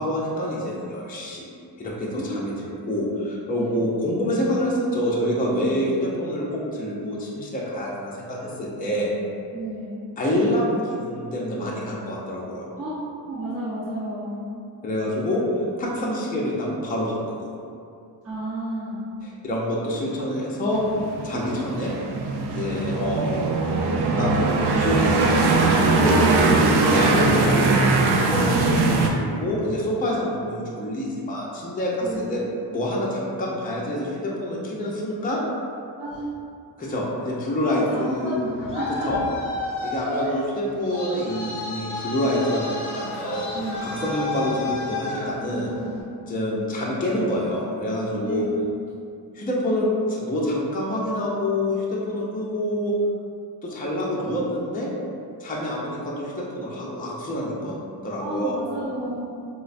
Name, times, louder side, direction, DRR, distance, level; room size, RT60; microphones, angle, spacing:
voice 1, 0.0-1.5 1.8-9.1 10.2-12.7 14.8-15.4 15.8-17.5 19.2-20.8 21.2-21.9 22.5-24.4 24.7-26.2 26.8-27.7 28.2-32.4 32.7-35.5 36.8-38.4 39.0-39.2 39.8-43.5 43.8-45.7 46.3-48.4 49.3-52.9 53.6-54.9 55.4-57.8 58.0-58.5, left 1 dB, 20° left, -5 dB, 0.5 m, -27 dB
voice 2, 2.1-2.6 3.6-3.9 9.5-10.0 12.8-12.9 13.3-14.4 18.2-19.0 21.3-21.9 22.6-22.9 32.0-32.4 36.0-36.2 37.7-39.2 40.2-40.4 43.5-44.0 45.5-46.0 48.2-48.4 58.2-59.2, right 1 dB, 35° right, -11 dB, 0.8 m, -32 dB
sound 1, 20.7-29.1, right 3 dB, 65° right, 0.5 m, -21 dB
Traffic noise roadway noise, 38.3-46.0, left 3 dB, 45° left, 0.9 m, -31 dB
5.0 x 2.1 x 2.5 m, 2.5 s
cardioid pair, 110°, 43 cm